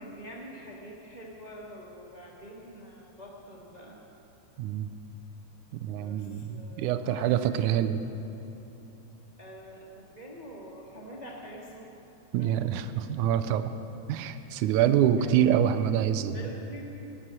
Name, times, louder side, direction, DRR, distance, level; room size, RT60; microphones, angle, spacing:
voice 1, 0.0-4.0 5.9-7.6 9.4-11.9 12.4-12.7 15.2-15.3 16.3-16.8, equal, 35° right, -2 dB, 0.6 m, -45 dB
voice 2, 4.6-4.9 5.7-8.0 12.3-13.7 14.1-16.4, right 10 dB, 85° right, 11 dB, 2.1 m, -26 dB
17.5 x 9.8 x 7.5 m, 3.0 s
omnidirectional pair, 3.5 m